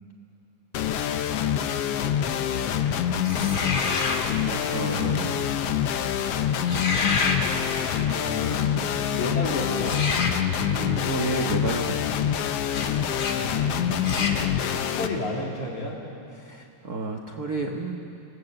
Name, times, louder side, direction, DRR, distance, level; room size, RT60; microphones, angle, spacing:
sound 1, 0.7-15.1, left 9 dB, 75° left, 1.4 m, -26 dB
sound 2, 3.2-4.3 6.5-7.4 9.8-10.4 12.7-12.9 13.1-13.4 14.0-14.4, left 3 dB, 35° left, 1.9 m, -28 dB
voice 1, 4.4-5.5 10.7-12.2 16.3-17.9, right 2 dB, 65° right, 1 dB, 0.9 m, -31 dB
voice 2, 8.1-8.8 9.1-10.0 13.3-14.0 14.9-16.0, left 2 dB, 60° left, -2 dB, 4.7 m, -32 dB
28.0 x 19.5 x 7.8 m, 2.6 s
omnidirectional pair, 3.8 m